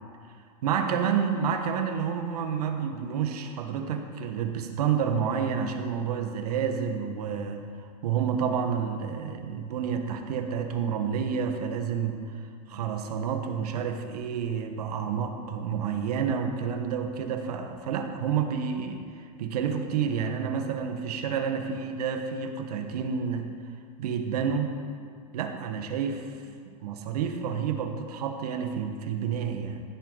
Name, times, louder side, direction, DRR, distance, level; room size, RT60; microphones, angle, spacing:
voice 1, 0.6-7.7 8.0-12.2 12.7-19.0 19.4-23.5 24.0-24.7 25.3-26.4 26.8-29.8, right 7 dB, 75° right, 5 dB, 1.6 m, -29 dB
16.5 x 11.0 x 4.1 m, 2.2 s
supercardioid pair, 125°, 20 cm